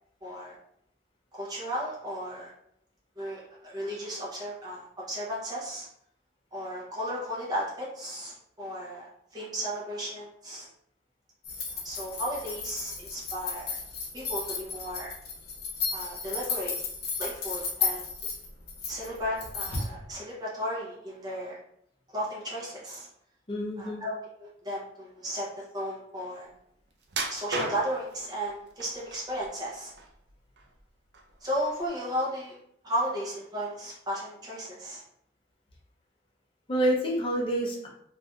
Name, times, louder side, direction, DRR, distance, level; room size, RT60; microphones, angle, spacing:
voice 1, 0.2-0.5 1.3-2.5 3.2-5.9 6.5-10.7 11.7-13.8 14.1-15.1 15.9-16.7 17.2-18.1 18.9-21.6 22.1-23.1 23.8-24.1 24.4-26.5 27.3-29.9 31.4-32.6 32.8-35.0, equal, 25° right, -6 dB, 0.7 m, -34 dB
sound 1, 11.4-19.9, left 5 dB, 60° left, 0.9 m, -34 dB
voice 2, 23.5-24.0 36.7-37.9, right 1 dB, 30° left, -1 dB, 0.6 m, -27 dB
sound 2, 27.1-28.1 28.8-29.5 29.9-30.8 31.1-31.3 31.9-32.0, right 2 dB, 70° right, 0.5 m, -34 dB
3.1 x 2.5 x 2.3 m, 0.72 s
head